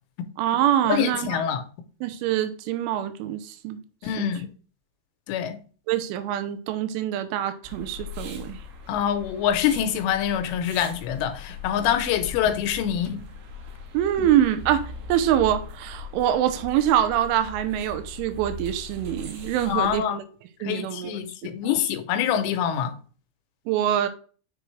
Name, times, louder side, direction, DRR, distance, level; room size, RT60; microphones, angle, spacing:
voice 1, 0.4-1.4 2.0-3.8 4.2-4.3 5.9-8.6 13.9-20.2 20.6-21.1 23.7-24.1, right 11 dB, 90° right, 3.2 m, -24 dB
voice 2, 0.9-1.6 4.0-4.5 5.3-5.6 8.9-13.2 14.2-14.3 19.7-20.2 20.6-23.0, left 9 dB, 90° left, 3.3 m, -25 dB
sound 1, 7.6-20.0, left 3 dB, 70° right, 3.1 m, -40 dB
7.8 x 6.1 x 3.2 m
omnidirectional pair, 5.4 m